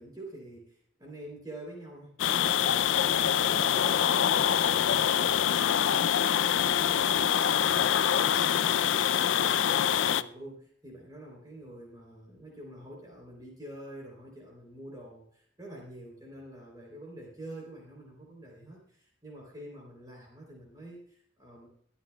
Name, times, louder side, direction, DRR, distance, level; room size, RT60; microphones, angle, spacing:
voice 1, 0.0-21.7, right 1 dB, 20° right, -2 dB, 3.3 m, -47 dB
sound 1, 2.2-10.2, left 9 dB, 85° left, 0.4 m, -25 dB
24.0 x 10.0 x 2.3 m, 0.65 s
head